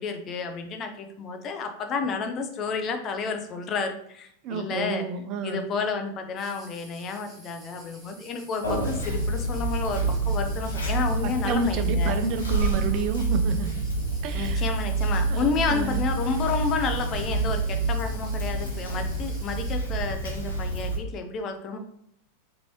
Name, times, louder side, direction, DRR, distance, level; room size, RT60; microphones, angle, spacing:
voice 1, 0.0-5.1 5.4-12.2 14.3-21.8, left 4 dB, 30° left, 6 dB, 0.4 m, -31 dB
voice 2, 4.4-5.6 11.2-13.7 14.2-14.6 15.3-16.0, right 5 dB, 40° right, 7 dB, 0.4 m, -30 dB
sound 1, 6.4-19.8, right 1 dB, 5° right, 0.8 m, -50 dB
Conversation, 8.6-21.0, right 2 dB, 75° left, 0.7 m, -27 dB
2.9 x 2.6 x 2.9 m, 0.70 s
figure-of-eight pair, 90°, 0 cm